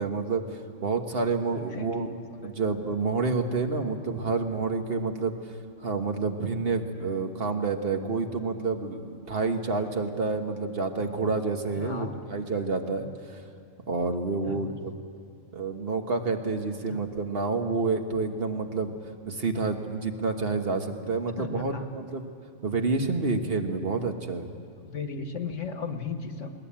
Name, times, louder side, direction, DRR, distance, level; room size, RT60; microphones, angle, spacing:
voice 1, 0.0-5.4 5.8-13.4 13.9-14.9 15.5-18.9 19.2-22.3 22.6-24.5, right 4 dB, 45° right, 5 dB, 1.6 m, -29 dB
voice 2, 1.5-3.0 11.7-12.1 14.4-14.8 16.9-17.1 21.4-21.8 24.8-26.5, left 5 dB, 70° left, 6 dB, 1.7 m, -36 dB
20.5 x 19.5 x 8.8 m, 2.2 s
omnidirectional pair, 1.4 m